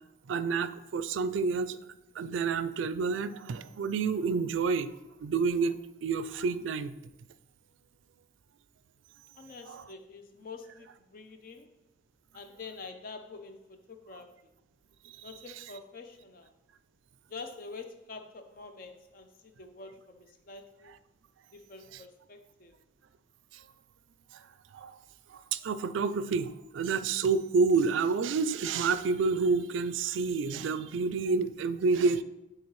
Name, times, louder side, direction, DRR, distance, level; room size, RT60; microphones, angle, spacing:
voice 1, 0.3-1.8 2.2-4.9 5.2-5.8 6.0-6.9 9.7-9.8 24.7-25.0 25.3-32.2, right 4 dB, 85° right, 13 dB, 0.4 m, -29 dB
voice 2, 9.3-11.7 12.3-14.3 15.2-16.5 17.3-20.9 21.5-22.8, left 4 dB, 50° left, 7 dB, 0.6 m, -46 dB
9.7 x 3.9 x 3.1 m, 0.96 s
head